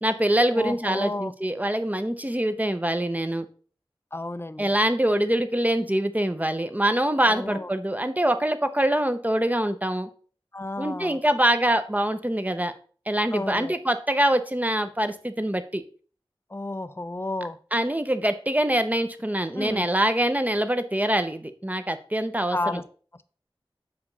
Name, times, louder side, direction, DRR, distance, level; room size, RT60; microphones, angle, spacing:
voice 1, 0.0-3.5 4.6-10.1 10.8-12.7 13.1-15.8 17.7-22.8, right 1 dB, 15° right, 10 dB, 0.7 m, -24 dB
voice 2, 0.5-1.3 4.1-4.7 7.3-7.7 10.5-11.2 13.3-13.8 16.5-17.6 19.6-19.8 22.5-22.8, left 2 dB, 25° left, 14 dB, 0.5 m, -31 dB
6.8 x 5.0 x 4.0 m, 0.42 s
wide cardioid pair, 50°, 9 cm